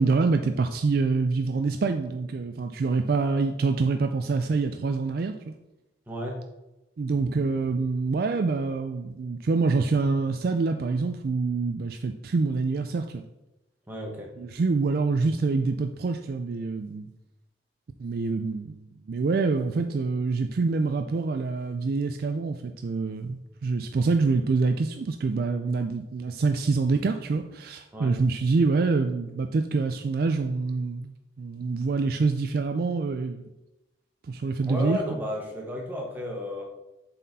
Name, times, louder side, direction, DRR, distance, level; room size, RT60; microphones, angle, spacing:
voice 1, 0.0-5.5 7.0-13.2 14.4-17.1 18.0-33.4 34.3-35.0, right 4 dB, 55° right, 7 dB, 0.4 m, -26 dB
voice 2, 6.1-6.5 13.9-14.3 27.9-28.1 34.6-36.7, left 1 dB, 10° right, -1 dB, 1.1 m, -33 dB
7.3 x 4.2 x 4.1 m, 0.95 s
head